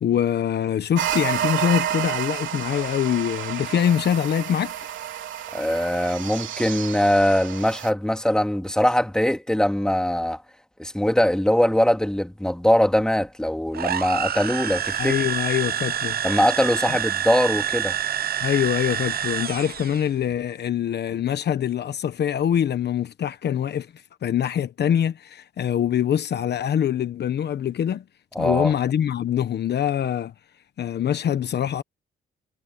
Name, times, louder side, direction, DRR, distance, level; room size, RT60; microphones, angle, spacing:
voice 1, 0.0-4.7 15.0-16.2 18.4-23.9 24.2-28.0 28.4-30.3 30.8-31.8, left 9 dB, 60° left, 1.1 m, -24 dB
sound 1, 1.0-7.9, right 11 dB, 75° right, 3.5 m, -30 dB
voice 2, 5.5-10.4 10.8-15.1 16.2-18.0 28.3-28.7, left 1 dB, 5° left, 2.6 m, -22 dB
sound 2, 13.7-20.1, right 9 dB, 50° right, 1.0 m, -27 dB
cardioid pair, 90°, 20 cm